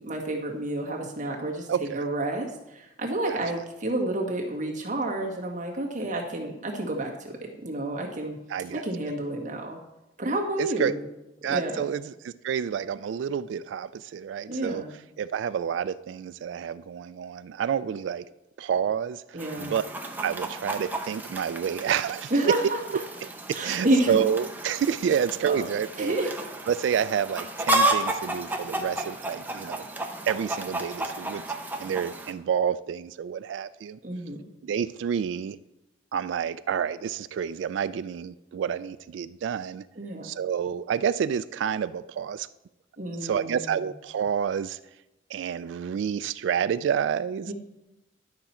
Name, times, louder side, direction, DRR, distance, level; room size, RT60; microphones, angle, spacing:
voice 1, 0.0-1.7 1.9-8.4 8.7-9.8 10.2-11.0 11.4-11.9 14.5-14.9 19.3-19.8 22.3-22.6 23.5-24.2 25.4-25.7 26.0-26.3 34.0-34.4 40.0-40.4 43.0-43.7 47.5-47.6, right 1 dB, 45° right, -1 dB, 1.7 m, -29 dB
voice 2, 1.7-2.0 3.3-3.4 8.5-8.8 10.6-10.9 11.4-14.8 15.2-18.3 18.6-19.8 20.2-22.3 23.2-23.3 23.6-26.2 26.7-29.9 30.3-31.4 31.8-34.0 34.6-35.6 36.1-39.8 40.2-42.5 43.2-44.8 45.3-47.5, right 8 dB, 85° right, 13 dB, 0.3 m, -29 dB
Chicken rooster, 19.4-32.3, right 2 dB, 10° right, 0.8 m, -32 dB
11.5 x 5.8 x 4.3 m, 0.93 s
head